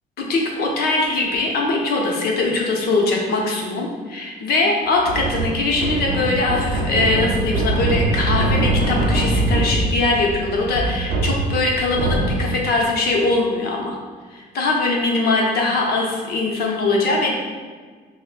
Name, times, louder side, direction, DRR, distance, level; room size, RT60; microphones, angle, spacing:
voice 1, 0.2-14.0 14.3-17.3, left 3 dB, 65° left, 0 dB, 0.7 m, -21 dB
sound 1, 5.0-12.8, right 2 dB, 70° right, 0.5 m, -22 dB
4.6 x 2.1 x 2.4 m, 1.5 s
cardioid pair, 110°, 17 cm